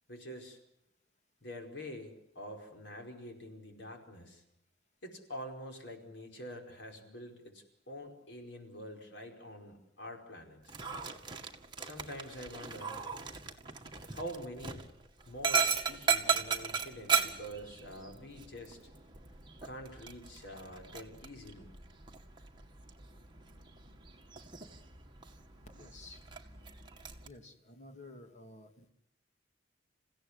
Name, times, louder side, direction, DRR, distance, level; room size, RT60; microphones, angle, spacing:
voice 1, 0.1-0.6 1.4-4.4 5.0-10.7 11.8-13.0 14.1-14.8 15.2-18.8 19.6-21.7, equal, 70° left, 3 dB, 4.9 m, -46 dB
Dog, 10.6-27.3, right 6 dB, 25° right, 2.0 m, -37 dB
voice 2, 25.7-26.2 27.2-28.9, left 2 dB, 40° left, 4 dB, 2.9 m, -52 dB
29.0 x 16.5 x 9.9 m, 0.82 s
head